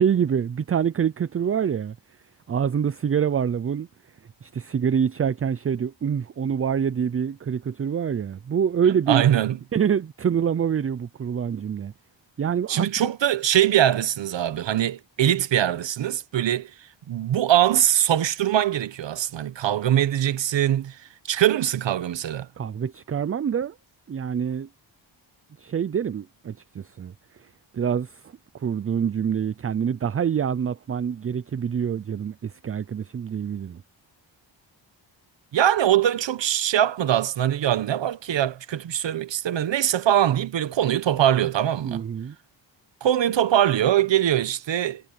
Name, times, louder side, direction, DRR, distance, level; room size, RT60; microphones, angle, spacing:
voice 1, 0.0-2.0 2.5-3.9 4.4-9.2 9.7-11.9 12.4-13.1 22.6-23.7 24.1-24.7 25.6-27.1 27.4-33.8 41.8-42.4, right 7 dB, 30° right, 0.4 m, -26 dB
voice 2, 9.1-9.6 12.7-16.7 17.1-21.0 21.3-22.5 35.5-42.0 43.0-45.0, right 11 dB, 70° right, 1.0 m, -22 dB
wide cardioid pair, 155°, 46 cm